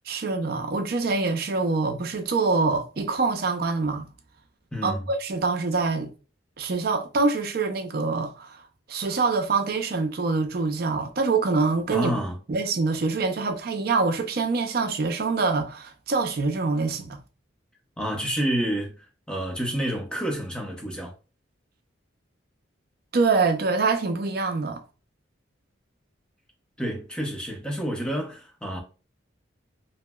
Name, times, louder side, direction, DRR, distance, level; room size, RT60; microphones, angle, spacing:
voice 1, 0.1-4.1 4.8-6.1 6.6-8.6 8.9-12.1 12.5-17.2 23.1-24.8, right 4 dB, 50° right, 0.4 m, -25 dB
voice 2, 4.7-5.1 11.9-12.4 18.0-21.1 26.8-28.8, equal, 5° left, 0.5 m, -29 dB
2.8 x 2.8 x 2.2 m
head